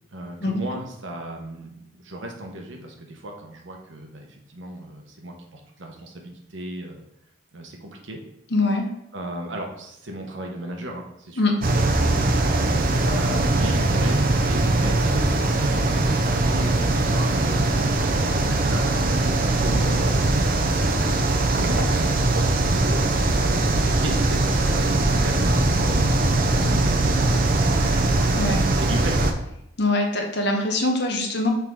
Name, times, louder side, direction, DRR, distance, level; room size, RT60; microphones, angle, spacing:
voice 1, 0.1-7.0 7.5-8.2 9.1-11.5 12.1-12.4 13.0-21.1 21.5-28.4 28.7-29.4, right 1 dB, 75° right, 2 dB, 1.0 m, -36 dB
voice 2, 8.5-8.8 11.4-11.5 28.3-28.6 29.8-31.5, left 2 dB, 60° left, 2 dB, 1.0 m, -23 dB
sound 1, 11.6-29.3, right 2 dB, 50° right, 0.6 m, -21 dB
5.8 x 4.5 x 3.7 m, 0.81 s
head